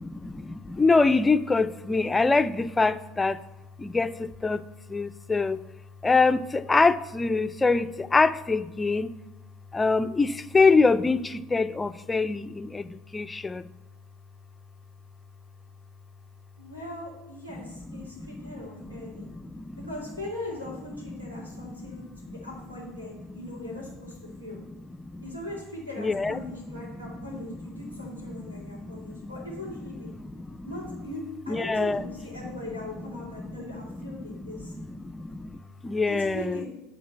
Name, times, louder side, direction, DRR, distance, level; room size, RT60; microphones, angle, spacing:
voice 1, 0.0-3.4 3.8-4.6 4.9-5.6 6.0-9.1 9.7-13.6 17.9-18.5 19.1-19.9 21.6-21.9 25.0-25.3 26.0-26.4 27.2-27.3 27.8-27.9 28.2-29.3 30.4-30.7 31.5-32.0 33.4-33.6 34.2-34.5 34.8-36.7, left 3 dB, 15° left, 12 dB, 0.4 m, -25 dB
voice 2, 16.6-19.3 19.8-24.6 25.2-30.1 30.6-34.8 36.1-36.7, left 1 dB, 90° right, -3 dB, 2.5 m, -40 dB
9.4 x 4.0 x 6.6 m, 0.99 s
figure-of-eight pair, 70°, 0 cm